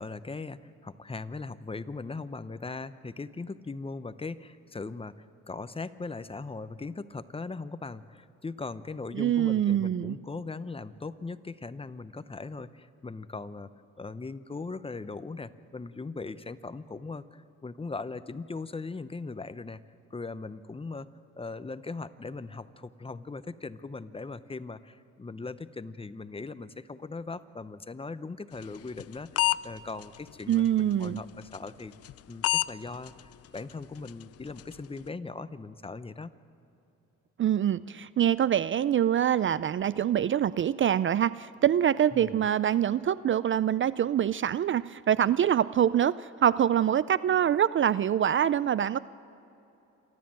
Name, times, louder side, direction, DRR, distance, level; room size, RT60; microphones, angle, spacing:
voice 1, 0.0-13.7 14.0-19.8 20.1-21.1 21.4-31.9 32.3-36.3 42.1-42.5, left 3 dB, 20° left, 13 dB, 0.7 m, -39 dB
voice 2, 9.1-10.2 30.5-31.2 37.4-49.0, right 10 dB, 40° right, 17 dB, 0.4 m, -25 dB
sound 1, 28.6-29.6 30.0-30.2 30.5-30.7 31.0-31.2 31.5-31.7 32.0-32.2 32.4-32.7 33.1-33.2 33.6-33.7 34.1-34.2 34.6-34.8, left 16 dB, 55° left, 0.5 m, -26 dB
28.0 x 12.5 x 7.5 m, 2.8 s
cardioid pair, 90°, 30 cm